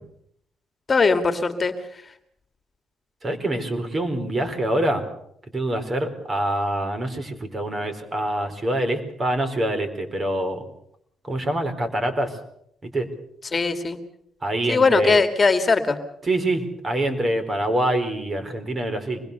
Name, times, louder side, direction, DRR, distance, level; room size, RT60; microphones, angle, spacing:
voice 1, 0.9-1.7 13.5-14.0 14.7-16.0, left 4 dB, 30° left, 8 dB, 2.2 m, -19 dB
voice 2, 3.2-5.1 5.5-10.6 11.2-12.4 12.8-13.1 14.4-15.2 16.2-19.2, right 1 dB, 30° right, 8 dB, 4.5 m, -25 dB
25.5 x 21.0 x 6.9 m, 0.71 s
cardioid pair, 90°, 0 cm